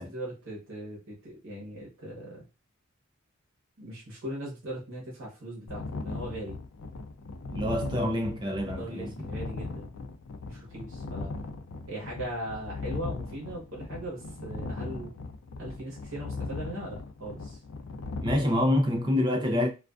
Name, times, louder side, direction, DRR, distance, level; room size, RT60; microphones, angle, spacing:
voice 1, 0.0-2.4 3.8-6.6 8.8-9.9 10.5-11.3 11.9-15.1 15.6-17.6, right 1 dB, 65° right, 0.9 m, -39 dB
sound 1, 5.7-18.4, left 3 dB, 75° left, 0.4 m, -38 dB
voice 2, 7.5-9.1 18.2-19.7, left 1 dB, 20° right, 0.5 m, -26 dB
2.4 x 2.3 x 2.3 m
head